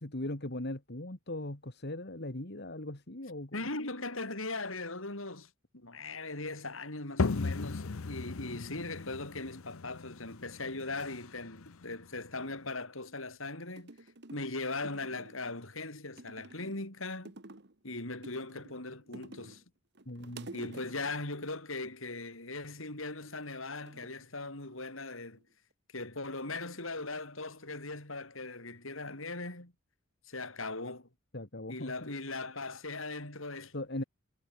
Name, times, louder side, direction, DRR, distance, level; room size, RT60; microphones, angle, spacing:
voice 1, 0.0-3.6 20.1-20.5 31.3-32.1 33.7-34.0, left 1 dB, 55° left, 2.5 m, -39 dB
voice 2, 3.5-13.9 14.3-17.3 17.8-19.6 20.5-25.4 25.9-29.7 30.3-31.1 31.7-33.7, left 2 dB, 75° left, 5.7 m, -39 dB
sound 1, 7.2-12.7, left 4 dB, 90° left, 0.7 m, -37 dB
sound 2, 13.8-14.5 14.8-15.6 16.2-16.9 17.2-17.8 18.2-19.6 19.9-21.3 22.9-23.4 23.9-24.9 25.2-25.7, right 2 dB, 55° right, 2.2 m, -50 dB
head